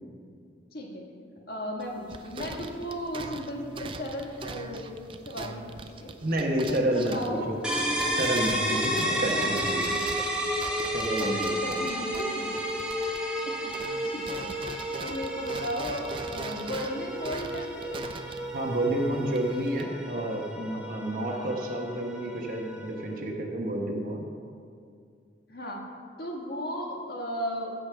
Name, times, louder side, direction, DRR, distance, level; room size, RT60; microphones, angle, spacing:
voice 1, 0.7-1.1 1.5-4.9 5.3-6.2 6.6-7.5 9.1-9.5 11.2-12.6 13.4-13.8 14.1-14.5 15.0-18.1 21.1-21.5 25.5-25.8 26.2-27.7, equal, 55° left, 0 dB, 1.6 m, -35 dB
sound 1, 1.8-13.4 13.7-19.8, right 3 dB, 30° right, 0.4 m, -41 dB
voice 2, 6.2-7.6 8.2-9.8 10.8-11.8 18.5-24.2, right 1 dB, 50° right, 0 dB, 1.1 m, -30 dB
sound 2, 7.6-23.2, equal, 5° right, 1.2 m, -32 dB
15.5 x 5.3 x 5.8 m, 2.3 s
head